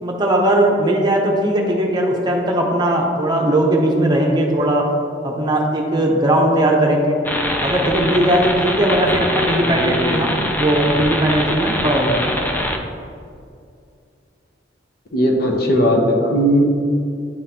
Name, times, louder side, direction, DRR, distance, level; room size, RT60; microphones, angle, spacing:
voice 1, 0.0-4.9 5.2-7.2 7.6-12.4, right 1 dB, 25° right, 0 dB, 0.7 m, -18 dB
sound 1, 7.2-12.8, left 1 dB, 10° left, 0.4 m, -23 dB
voice 2, 9.6-10.1 15.1-16.6, equal, 55° left, 0 dB, 0.9 m, -17 dB
10.0 x 3.8 x 2.9 m, 2.4 s
head